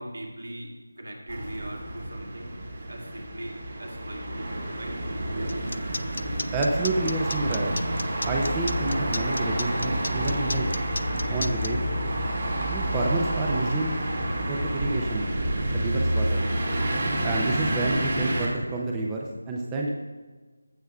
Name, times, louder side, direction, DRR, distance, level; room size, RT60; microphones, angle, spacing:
voice 1, 0.0-2.5 2.9-5.0, right 1 dB, 70° right, 0 dB, 2.1 m, -40 dB
sound 1, 1.3-18.5, right 1 dB, 45° right, 1.9 m, -29 dB
sound 2, 5.5-11.7, left 2 dB, 65° left, 0.4 m, -34 dB
voice 2, 6.5-7.7 8.3-10.8 11.3-11.8 12.7-14.0 14.5-15.3 15.8-16.4 17.2-19.9, right 2 dB, 10° right, -1 dB, 0.5 m, -29 dB
15.5 x 6.4 x 2.4 m, 1.3 s
figure-of-eight pair, 165°, 0 cm